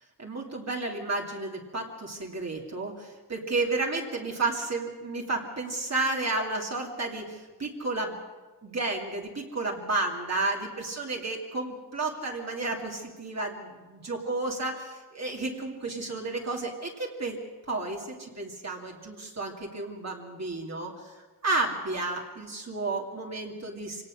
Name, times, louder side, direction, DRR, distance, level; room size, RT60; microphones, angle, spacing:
voice 1, 0.2-8.2 8.6-17.4 17.7-24.0, right 3 dB, 40° right, 0 dB, 2.5 m, -32 dB
26.0 x 18.5 x 6.4 m, 1.3 s
wide cardioid pair, 145°, 40 cm